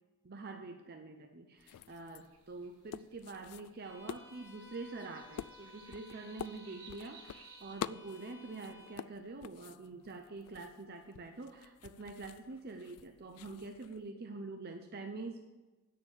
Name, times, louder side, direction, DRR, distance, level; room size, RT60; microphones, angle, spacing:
voice 1, 0.2-15.4, right 3 dB, 45° right, 5 dB, 0.6 m, -46 dB
sound 1, 1.6-14.1, left 9 dB, 85° left, 0.3 m, -49 dB
sound 2, 1.6-7.8, right 6 dB, 70° right, 1.7 m, -60 dB
Bowed string instrument, 3.8-9.1, left 4 dB, 60° left, 2.1 m, -58 dB
8.8 x 6.7 x 7.2 m, 1.2 s
head